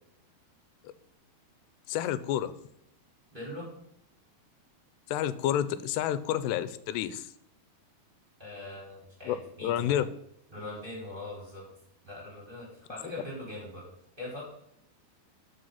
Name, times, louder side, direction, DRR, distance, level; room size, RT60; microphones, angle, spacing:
voice 1, 1.9-2.5 5.1-7.3 9.2-10.1, left 11 dB, 85° left, 14 dB, 2.8 m, -30 dB
voice 2, 3.3-3.7 8.4-10.0 10.5-11.6 12.0-13.9 14.2-14.4, left 1 dB, 10° right, -3 dB, 4.1 m, -41 dB
13.0 x 6.1 x 5.7 m, 0.76 s
omnidirectional pair, 4.8 m